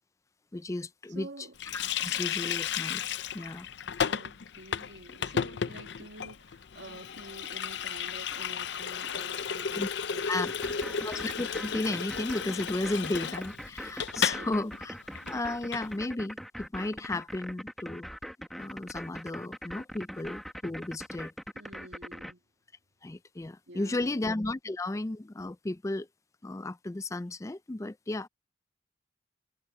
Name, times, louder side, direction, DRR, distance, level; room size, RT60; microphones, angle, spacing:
voice 1, 0.5-1.5 1.7-3.0 3.3-3.7 9.8-9.9 10.3-10.5 11.0-15.0 15.3-18.1 18.6-21.3 23.0-26.1 26.4-28.3, left 2 dB, 15° left, 0.4 m, -34 dB
voice 2, 1.1-1.6 4.0-11.0 14.3-14.5 21.5-22.4 23.7-24.2, right 1 dB, 75° right, 2.3 m, -48 dB
Water tap faucet, 1.6-14.5 14.7-14.9 15.1-15.9, left 7 dB, 65° left, 0.5 m, -34 dB
sound 1, 10.4-22.3, equal, ahead, 1.3 m, -41 dB
head